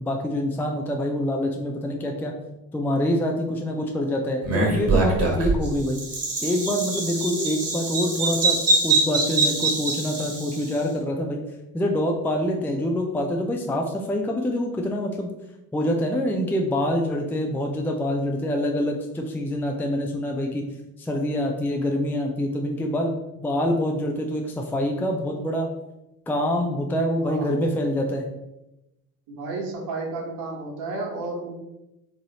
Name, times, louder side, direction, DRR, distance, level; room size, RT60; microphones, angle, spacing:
voice 1, 0.0-2.3 2.7-6.0 6.4-11.4 11.7-15.3 15.7-20.6 21.0-25.7 26.3-28.3, left 1 dB, 5° left, 1 dB, 0.5 m, -25 dB
Bird vocalization bird call bird song, 4.4-10.7, right 2 dB, 35° right, 1.6 m, -24 dB
voice 2, 27.2-27.5 29.3-31.5, right 3 dB, 55° right, -2 dB, 1.5 m, -32 dB
3.8 x 3.1 x 4.1 m, 0.91 s
figure-of-eight pair, 55°, 45 cm